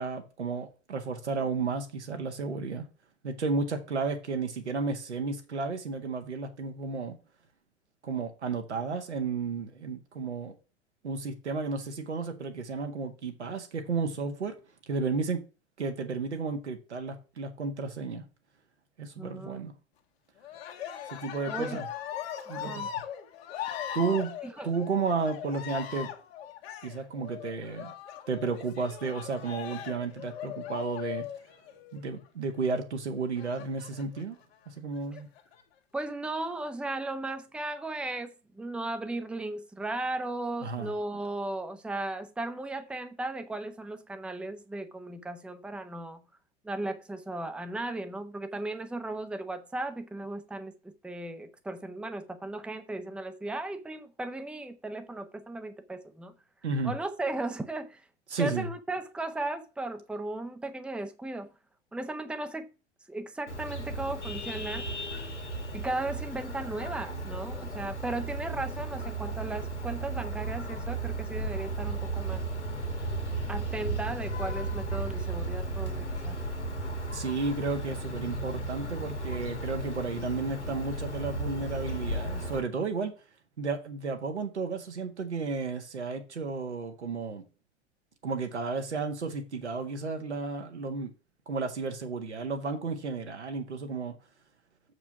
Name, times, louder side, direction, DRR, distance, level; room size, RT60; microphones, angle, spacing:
voice 1, 0.0-2.8 3.2-7.2 8.0-10.5 11.0-14.5 14.9-15.4 15.8-18.2 19.0-19.7 21.1-21.9 22.5-22.9 23.9-24.3 24.6-26.1 26.8-27.9 28.3-31.3 31.9-34.4 34.7-35.3 40.6-40.9 56.6-56.9 58.3-58.7 77.1-83.1 83.6-87.4 88.2-91.1 91.5-94.2, right 4 dB, 80° right, 1.6 m, -33 dB
voice 2, 19.2-19.7 21.5-21.8 22.5-22.9 24.4-24.7 35.9-46.2 46.6-56.3 56.8-58.0 58.4-61.5 61.9-62.7 63.1-64.9 65.7-72.4 73.5-76.4, right 2 dB, 5° right, 0.8 m, -36 dB
Cheering, 20.4-32.1 33.4-34.2 35.0-35.6, left 10 dB, 60° left, 1.8 m, -40 dB
Vehicle horn car horn honking, 63.5-82.6, right 2 dB, 90° left, 1.9 m, -35 dB
7.2 x 4.9 x 5.9 m
figure-of-eight pair, 85°, 34 cm